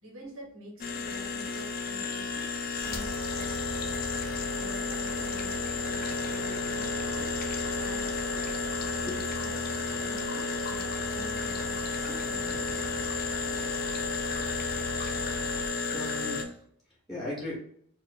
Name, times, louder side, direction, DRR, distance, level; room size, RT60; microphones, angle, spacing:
voice 1, 0.0-2.5 2.8-3.9 4.5-7.4 7.7-8.1 9.4-12.7, equal, 80° right, -2 dB, 1.5 m, -48 dB
sound 1, 0.8-16.4, left 4 dB, 40° left, 0.4 m, -32 dB
sound 2, 2.8-15.7, right 1 dB, 55° right, 0.4 m, -42 dB
voice 2, 8.4-9.3 15.9-17.6, left 1 dB, ahead, -5 dB, 1.1 m, -39 dB
4.7 x 2.6 x 2.5 m, 0.65 s
head